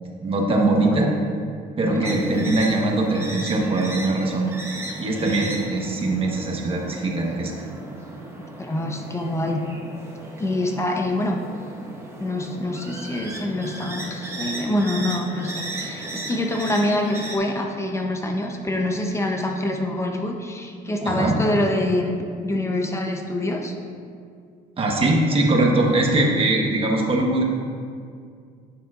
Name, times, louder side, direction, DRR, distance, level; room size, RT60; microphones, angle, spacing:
voice 1, 0.2-1.1 1.8-4.5 5.0-7.5 21.0-21.4 24.8-27.4, right 2 dB, 35° right, 0 dB, 1.3 m, -21 dB
sound 1, 2.0-17.4, right 1 dB, 15° right, 1.0 m, -36 dB
voice 2, 8.6-9.6 10.4-11.4 12.2-22.2 22.4-23.7, left 1 dB, 15° left, 2 dB, 0.7 m, -25 dB
9.6 x 6.8 x 2.5 m, 2.2 s
cardioid pair, 110°, 17 cm